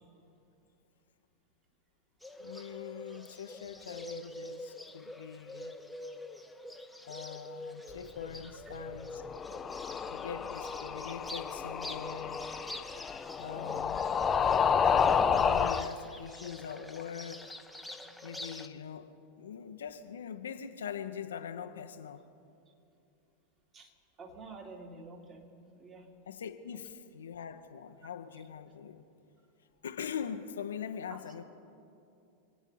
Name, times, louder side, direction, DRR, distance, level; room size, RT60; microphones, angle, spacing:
Bird, 2.2-18.7, left 1 dB, ahead, 0.9 m, -46 dB
voice 1, 2.4-5.8 7.1-9.2 10.1-12.4 13.4-14.1 15.2-17.5 18.2-22.3 26.3-29.0 29.8-31.4, left 7 dB, 65° left, 8 dB, 0.8 m, -42 dB
sound 1, 9.2-15.9, left 6 dB, 20° left, 0.5 m, -30 dB
voice 2, 24.2-26.1, right 3 dB, 30° right, 1 dB, 2.5 m, -49 dB
26.5 x 9.5 x 5.6 m, 2.7 s
figure-of-eight pair, 90°, 0 cm